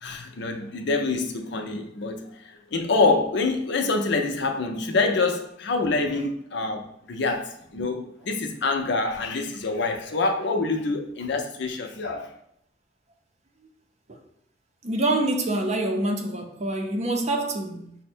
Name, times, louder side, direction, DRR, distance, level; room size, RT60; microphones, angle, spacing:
voice 1, 0.0-12.3, left 3 dB, 65° left, 0.6 m, -26 dB
voice 2, 14.8-18.0, right 2 dB, 35° right, 0.6 m, -26 dB
5.7 x 2.1 x 4.3 m
head